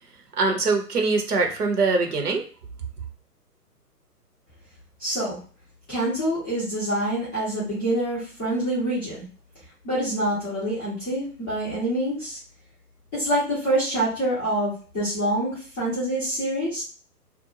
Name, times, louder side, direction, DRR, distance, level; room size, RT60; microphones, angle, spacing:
voice 1, 0.4-2.4, right 3 dB, 70° right, 3 dB, 1.0 m, -23 dB
voice 2, 5.0-5.4 5.9-9.3 9.8-12.4 13.1-16.8, right 1 dB, 10° left, -13 dB, 0.5 m, -26 dB
2.5 x 2.1 x 2.9 m, 0.39 s
figure-of-eight pair, 125°, 48 cm